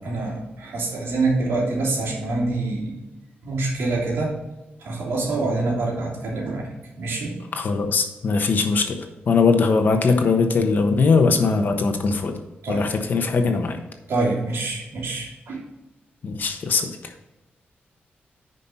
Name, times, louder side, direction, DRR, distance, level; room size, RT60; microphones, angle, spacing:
voice 1, 0.0-3.0 3.4-4.4 4.8-7.4 12.6-12.9 14.1-15.6, right 2 dB, 90° right, -3 dB, 3.0 m, -26 dB
voice 2, 7.5-12.3 12.7-13.8 16.2-16.9, left 4 dB, 50° left, 5 dB, 1.1 m, -20 dB
9.7 x 5.3 x 4.2 m, 1.0 s
wide cardioid pair, 165°, 4 cm